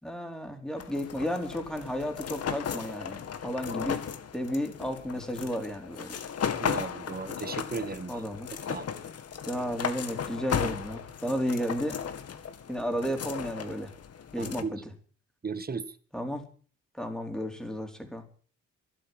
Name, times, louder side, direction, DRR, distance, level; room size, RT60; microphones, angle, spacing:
voice 1, 0.0-4.0 4.3-6.2 8.1-8.5 9.4-12.0 12.7-13.9 14.3-14.8 16.1-16.4 17.0-18.2, equal, ahead, 5 dB, 4.5 m, -33 dB
sound 1, 0.8-14.6, left 7 dB, 55° left, 2.2 m, -36 dB
voice 2, 6.6-8.2 8.7-8.9 14.4-14.8 15.4-16.0, right 5 dB, 30° right, 14 dB, 1.7 m, -35 dB
13.5 x 11.5 x 9.5 m, 0.43 s
cardioid pair, 90°, 30 cm